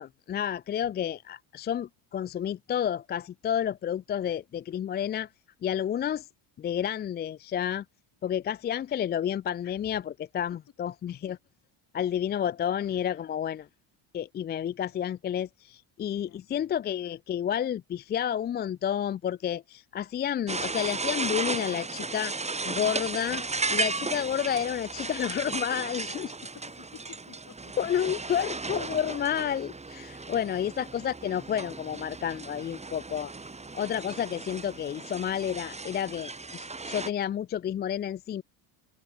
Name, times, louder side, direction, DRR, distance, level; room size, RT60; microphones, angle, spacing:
voice 1, 0.0-5.3 5.6-6.3 6.6-7.8 8.2-11.4 11.9-13.7 14.1-22.3 22.6-26.3 27.8-33.3 33.7-38.4, left 9 dB, 25° left, 0.3 m, -30 dB
voice 2, 12.9-13.2 16.1-16.4 26.5-27.7 28.0-28.2 30.2-30.4, left 9 dB, 40° left, 7.1 m, -52 dB
sound 1, 20.5-37.1, right 3 dB, 15° right, 2.7 m, -35 dB
supercardioid pair, 105°, 48 cm